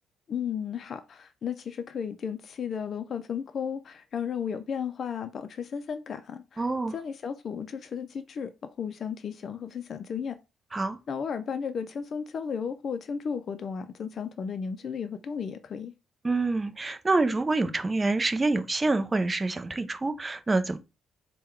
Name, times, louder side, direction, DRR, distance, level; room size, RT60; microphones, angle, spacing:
voice 1, 0.3-6.6 6.9-8.5 8.8-10.4 11.1-15.9, left 7 dB, 55° left, 0.4 m, -34 dB
voice 2, 6.6-6.9 10.7-11.0 16.2-20.8, right 3 dB, 20° right, 0.5 m, -26 dB
3.6 x 2.2 x 4.4 m
cardioid pair, 90°, 0 cm